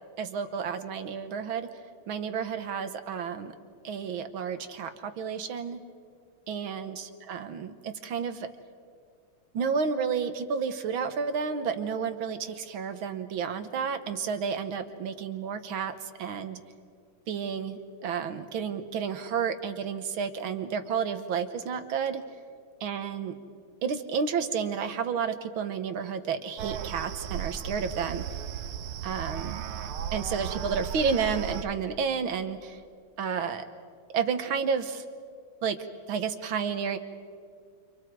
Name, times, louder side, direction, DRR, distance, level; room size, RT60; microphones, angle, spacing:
voice 1, 0.2-1.7 2.1-3.5 3.8-5.8 6.5-8.5 9.5-16.6 17.3-22.2 22.8-23.4 23.8-28.2 29.0-29.6 30.1-32.8 33.2-33.7 34.1-35.0 35.6-35.8 36.1-37.0, right 6 dB, 70° right, 9 dB, 1.9 m, -31 dB
sound 1, 26.6-31.6, right 9 dB, 90° right, 1.8 m, -35 dB
29.5 x 28.5 x 4.7 m, 2.1 s
omnidirectional pair, 2.4 m